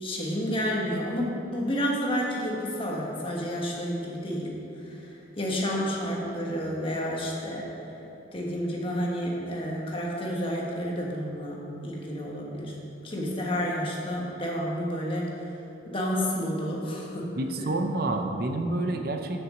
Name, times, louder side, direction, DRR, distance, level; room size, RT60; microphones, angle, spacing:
voice 1, 0.0-7.7 8.3-12.7 13.0-15.3 15.9-17.3 17.6-17.7, equal, 30° left, -3 dB, 1.4 m, -30 dB
voice 2, 17.4-19.4, right 2 dB, 50° right, 4 dB, 0.6 m, -28 dB
7.9 x 6.1 x 6.4 m, 2.9 s
head